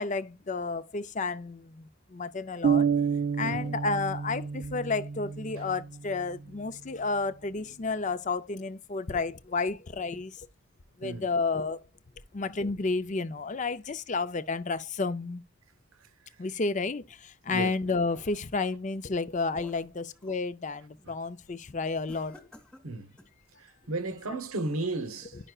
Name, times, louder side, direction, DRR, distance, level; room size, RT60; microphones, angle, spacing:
voice 1, 0.0-2.9 3.4-10.5 11.0-11.8 12.3-15.4 16.4-22.4 24.3-24.4, left 3 dB, 35° left, 0.5 m, -31 dB
sound 1, 2.6-6.4, right 6 dB, 45° right, 0.3 m, -29 dB
sound 2, 17.7-18.6 19.1-20.5 20.9-21.2 22.1-23.4, left 1 dB, 5° left, 1.2 m, -55 dB
voice 2, 23.6-25.4, right 2 dB, 75° right, 0.9 m, -34 dB
11.0 x 5.5 x 2.4 m
head